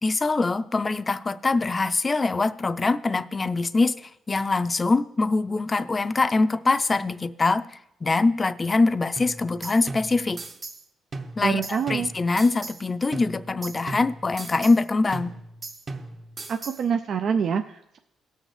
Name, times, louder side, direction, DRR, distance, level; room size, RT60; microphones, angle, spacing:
voice 1, 0.0-10.4 11.4-15.3, left 3 dB, 30° left, 13 dB, 0.5 m, -23 dB
sound 1, 9.2-10.8 11.1-12.8 13.1-14.8 15.1-16.8, right 3 dB, 40° right, 0.9 m, -38 dB
voice 2, 11.4-12.1 16.5-18.0, right 6 dB, 65° right, 6 dB, 0.4 m, -26 dB
17.5 x 6.4 x 3.3 m, 0.81 s
cardioid pair, 80°, 0 cm